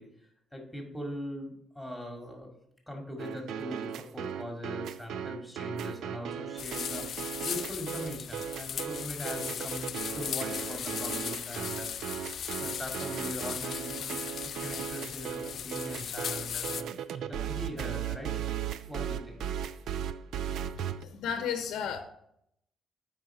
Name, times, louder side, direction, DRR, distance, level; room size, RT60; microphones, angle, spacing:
voice 1, 0.0-2.5 2.9-7.1 7.4-12.3 12.6-14.2 14.6-16.9 17.3-18.3 18.9-19.4, left 1 dB, ahead, 2 dB, 2.1 m, -41 dB
sound 1, 3.2-21.0, right 9 dB, 80° right, 0.4 m, -37 dB
sound 2, 6.6-16.8, left 8 dB, 65° left, 0.4 m, -37 dB
voice 2, 20.6-22.0, left 8 dB, 90° left, 7 dB, 0.8 m, -34 dB
8.0 x 5.3 x 4.8 m, 0.74 s
cardioid pair, 90°, 0 cm